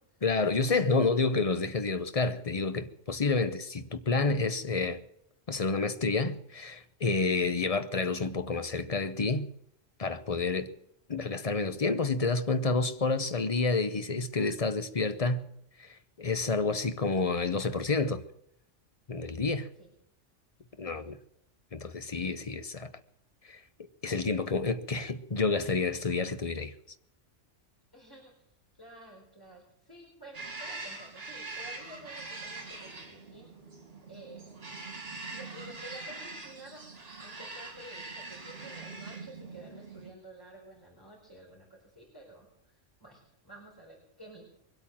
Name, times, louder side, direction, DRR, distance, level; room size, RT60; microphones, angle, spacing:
voice 1, 0.2-5.0 5.5-9.5 10.0-10.7 11.1-15.5 15.8-15.9 16.2-18.2 19.1-19.7 20.8-21.2 21.7-22.9 23.5-23.6 24.0-26.7, left 3 dB, 35° left, 0.8 m, -29 dB
voice 2, 27.9-28.3 28.8-33.5 34.1-34.5 35.3-41.7 41.9-42.5 42.7-43.2 43.4-44.4, right 1 dB, 15° left, 4.2 m, -51 dB
sound 1, 30.3-40.1, right 3 dB, 50° right, 2.9 m, -43 dB
22.5 x 8.5 x 7.6 m
omnidirectional pair, 1.3 m